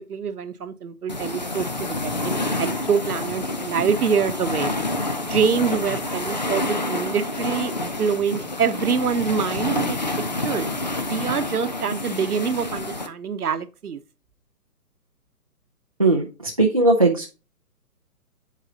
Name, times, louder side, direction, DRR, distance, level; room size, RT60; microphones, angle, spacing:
voice 1, 0.1-4.7 5.2-10.0 10.4-10.7 11.1-14.0, right 6 dB, 70° right, 1.0 m, -25 dB
sound 1, 1.1-13.1, left 2 dB, 30° left, 0.5 m, -28 dB
voice 2, 16.0-17.3, right 2 dB, 25° right, 0.4 m, -19 dB
7.6 x 4.7 x 3.8 m
figure-of-eight pair, 150°, 47 cm